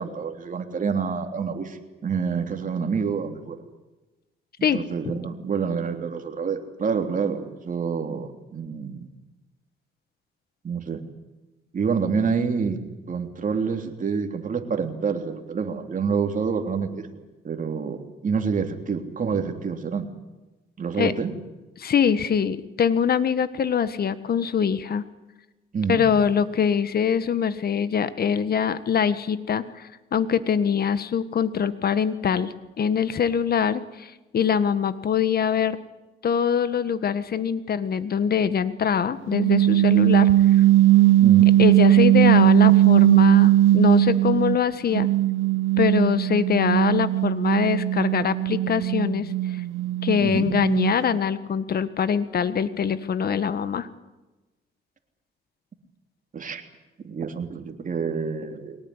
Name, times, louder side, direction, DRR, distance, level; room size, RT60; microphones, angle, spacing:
voice 1, 0.0-3.6 4.7-9.1 10.6-11.0 11.7-12.8 13.1-20.1 20.8-21.3 25.7-26.1 41.2-41.5 50.2-50.5 56.3-56.6 57.0-58.8, right 5 dB, 40° right, 5 dB, 3.4 m, -27 dB
voice 2, 21.8-25.0 25.9-35.8 36.2-40.3 41.6-45.1 45.8-49.3 50.0-53.9, left 7 dB, 50° left, 13 dB, 1.6 m, -23 dB
sound 1, 39.3-44.6 44.9-51.2, right 14 dB, 85° right, 0.8 m, -18 dB
23.0 x 18.5 x 9.9 m, 1.1 s
cardioid pair, 90°, 20 cm